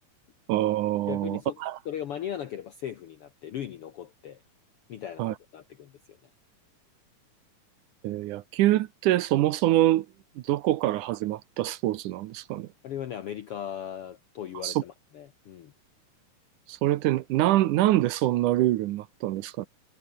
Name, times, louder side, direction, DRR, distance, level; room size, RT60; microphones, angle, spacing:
voice 1, 0.5-1.8 5.2-5.3 8.0-10.1 10.4-12.7 14.6-14.8 16.7-19.7, right 15 dB, 75° right, 2.2 m, -25 dB
voice 2, 1.1-1.6 1.8-4.4 4.9-6.2 12.8-15.7, left 10 dB, 70° left, 1.3 m, -38 dB
omnidirectional pair, 3.9 m